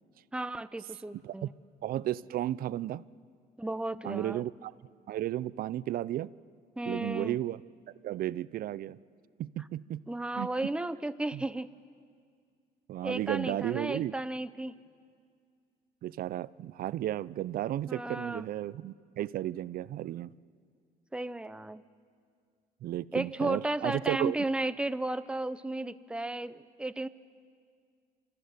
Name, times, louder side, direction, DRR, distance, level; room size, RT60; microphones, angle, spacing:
voice 1, 0.3-1.5 3.6-4.4 6.8-7.4 10.1-11.7 13.0-14.7 17.9-18.5 21.1-21.8 23.1-27.1, right 2 dB, 5° right, 13 dB, 0.6 m, -34 dB
voice 2, 1.8-3.0 4.0-4.7 5.1-6.3 6.9-7.6 8.0-9.0 9.4-10.0 10.4-10.5 11.3-11.4 12.9-14.1 16.0-20.3 22.8-24.4, right 13 dB, 60° right, 19 dB, 0.5 m, -33 dB
28.0 x 14.0 x 9.5 m, 2.1 s
cardioid pair, 110°, 17 cm